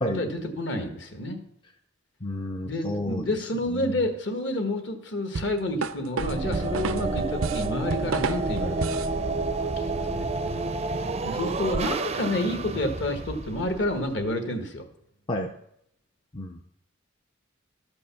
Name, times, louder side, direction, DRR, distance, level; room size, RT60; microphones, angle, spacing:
voice 1, 0.1-1.4 2.6-10.3 11.2-14.8, left 1 dB, 60° left, 6 dB, 1.4 m, -29 dB
voice 2, 2.2-3.2 3.7-4.0 15.3-15.5 16.3-16.7, left 1 dB, 25° left, 4 dB, 0.5 m, -31 dB
sound 1, 5.3-9.2, right 4 dB, 85° right, 0.6 m, -31 dB
sound 2, 6.2-14.3, right 3 dB, 30° right, 0.5 m, -30 dB
13.0 x 5.3 x 7.0 m, 0.74 s
head